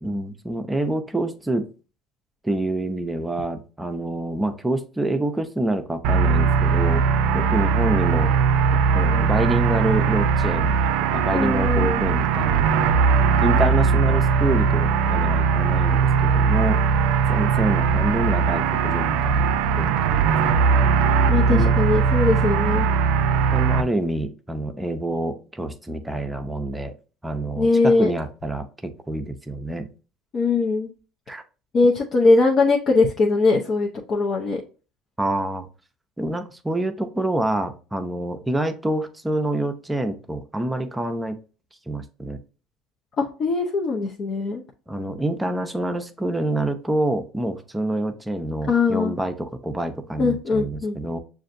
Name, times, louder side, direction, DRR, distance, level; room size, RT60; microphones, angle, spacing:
voice 1, 0.0-1.7 2.4-7.0 7.3-8.3 8.7-12.7 13.4-16.8 17.3-20.9 21.5-21.7 23.5-26.9 27.2-29.9 31.3-31.4 35.2-35.7 36.2-41.4 41.9-42.4 44.9-51.2, right 1 dB, 10° right, 7 dB, 0.5 m, -27 dB
sound 1, 6.0-23.8, right 6 dB, 75° right, 0.4 m, -20 dB
voice 2, 11.3-12.0 21.3-22.9 27.5-28.1 30.3-30.9 31.7-34.6 43.2-44.6 48.7-49.1 50.2-50.9, left 3 dB, 45° left, -1 dB, 0.6 m, -21 dB
6.3 x 2.5 x 2.5 m, 0.35 s
supercardioid pair, 100°, 0 cm